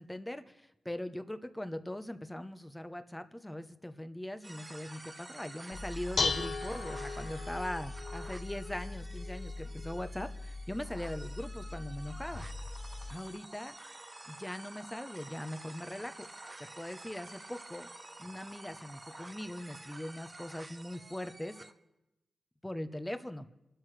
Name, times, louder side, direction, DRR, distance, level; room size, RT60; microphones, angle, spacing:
voice 1, 0.0-12.4 13.1-13.8 14.3-16.3 16.6-17.9 18.2-21.6 22.6-23.5, left 1 dB, 10° left, 10 dB, 0.8 m, -41 dB
sound 1, 4.4-21.7, right 2 dB, 25° right, 0.8 m, -50 dB
Dishes pots and pans, 5.7-13.1, left 4 dB, 65° left, 1.1 m, -38 dB
27.5 x 12.5 x 3.3 m, 0.96 s
wide cardioid pair, 100°, 0 cm